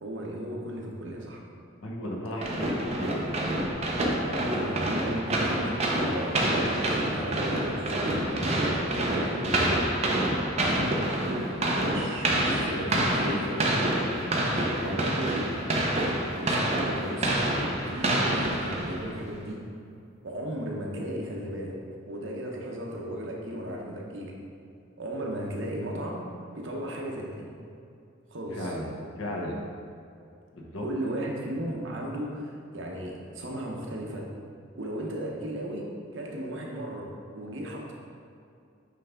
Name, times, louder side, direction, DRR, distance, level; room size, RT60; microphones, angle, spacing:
voice 1, 0.0-1.4 4.2-9.8 10.6-11.1 11.6-14.1 14.4-15.4 16.3-17.6 17.9-19.6 20.2-21.8 22.1-24.3 25.0-26.2 26.5-27.5 28.3-28.7 30.8-34.3 34.8-37.9, right 1 dB, 65° right, -1 dB, 0.9 m, -35 dB
voice 2, 1.8-3.2 14.5-15.1 28.5-28.9 29.2-29.6 30.5-30.8, left 1 dB, 85° left, -2 dB, 1.1 m, -35 dB
sound 1, 2.4-19.2, right 1 dB, 35° right, 0.7 m, -27 dB
8.3 x 3.3 x 3.7 m, 2.5 s
head